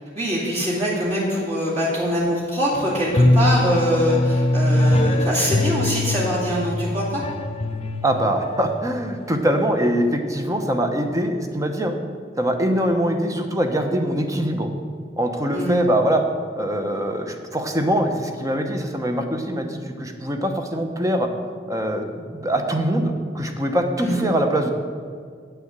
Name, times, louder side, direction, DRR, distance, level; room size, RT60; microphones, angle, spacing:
voice 1, 0.1-7.2 15.5-15.8 24.0-24.3, equal, 35° right, -7 dB, 2.3 m, -23 dB
sound 1, 2.7-8.6, left 1 dB, 30° left, 0.5 m, -22 dB
voice 2, 8.0-11.9 12.4-14.7 15.2-16.2 16.5-21.3 21.7-24.7, right 1 dB, 20° right, 5 dB, 0.9 m, -23 dB
8.9 x 6.9 x 7.4 m, 2.1 s
head